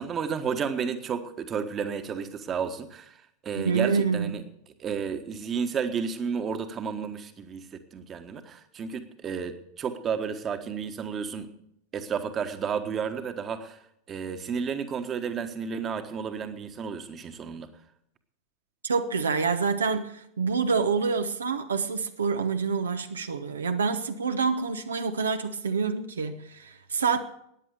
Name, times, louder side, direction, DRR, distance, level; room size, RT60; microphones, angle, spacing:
voice 1, 0.0-3.1 3.4-4.4 4.8-11.5 11.9-13.8 14.1-17.7, right 6 dB, 25° right, 1.4 m, -32 dB
voice 2, 3.6-4.4 18.8-27.2, right 5 dB, 70° right, 1.0 m, -27 dB
14.5 x 9.9 x 6.7 m
figure-of-eight pair, 90°, 0 cm